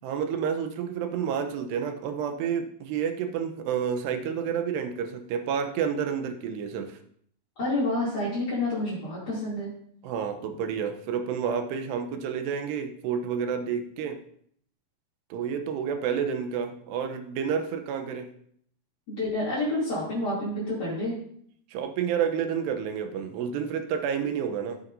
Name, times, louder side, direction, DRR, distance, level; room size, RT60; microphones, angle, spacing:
voice 1, 0.0-7.0 10.0-14.2 15.3-18.3 21.7-24.8, right 7 dB, 80° right, 7 dB, 2.9 m, -30 dB
voice 2, 7.6-9.7 19.1-21.2, left 1 dB, 25° left, -10 dB, 2.6 m, -28 dB
13.5 x 8.7 x 2.7 m, 0.64 s
omnidirectional pair, 5.0 m